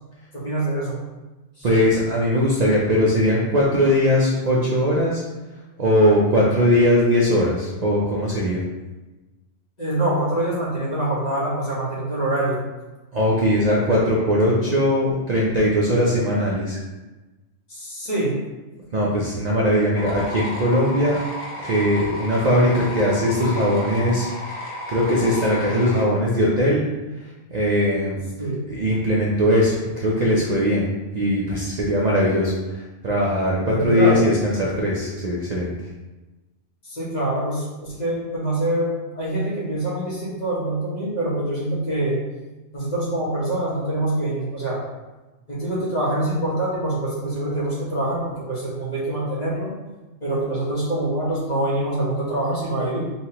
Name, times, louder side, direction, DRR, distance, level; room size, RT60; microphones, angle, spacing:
voice 1, 0.3-1.0 1.6-1.7 9.8-12.7 17.7-18.3 28.4-28.6 33.6-34.1 36.8-42.2 42.7-44.8 45.5-49.7 50.2-53.0, right 1 dB, 35° left, -8 dB, 1.5 m, -25 dB
voice 2, 1.6-5.2 5.8-8.6 13.1-16.8 18.9-21.2 21.6-24.6 24.9-26.8 27.5-28.2 28.7-30.9 31.1-35.7, equal, 45° right, -4 dB, 0.6 m, -20 dB
sound 1, 19.9-26.0, left 1 dB, 75° left, 1.4 m, -33 dB
5.6 x 2.8 x 2.9 m, 1.1 s
omnidirectional pair, 1.3 m